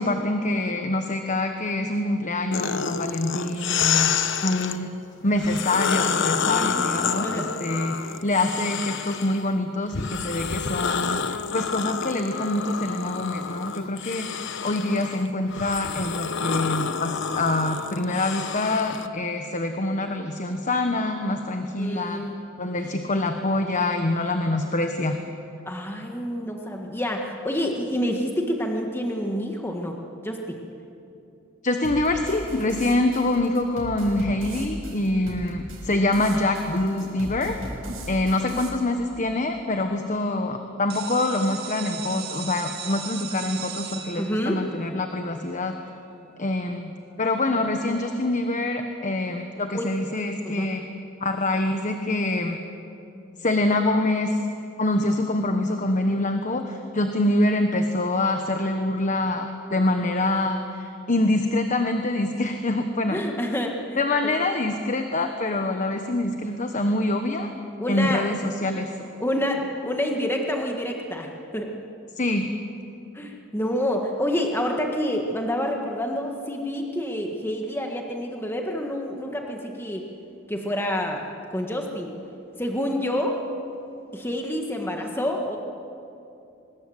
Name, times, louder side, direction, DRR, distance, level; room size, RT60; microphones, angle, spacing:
voice 1, 0.0-5.0 5.2-22.2 22.6-25.2 31.6-37.6 38.1-45.8 46.4-50.8 51.2-52.6 53.4-54.4 54.8-63.2 64.0-67.5 67.9-68.9 72.2-72.5, left 2 dB, 40° left, 5 dB, 1.3 m, -25 dB
sound 1, 2.5-4.8 5.4-9.5 9.9-19.1, left 6 dB, 60° left, 1.0 m, -28 dB
voice 2, 6.4-7.5 21.8-22.4 25.7-29.9 30.2-30.6 44.2-44.6 49.7-49.9 50.4-50.7 63.1-64.0 64.2-64.3 67.8-68.2 69.2-71.7 73.1-80.1 80.5-81.2 81.5-82.1 82.6-83.4 84.1-85.6, equal, 10° left, 1 dB, 1.7 m, -28 dB
sound 2, 31.8-38.7, right 1 dB, 75° right, 5.6 m, -38 dB
sound 3, 40.9-46.5, right 8 dB, 50° right, 2.2 m, -38 dB
24.5 x 21.0 x 7.9 m, 2.7 s
head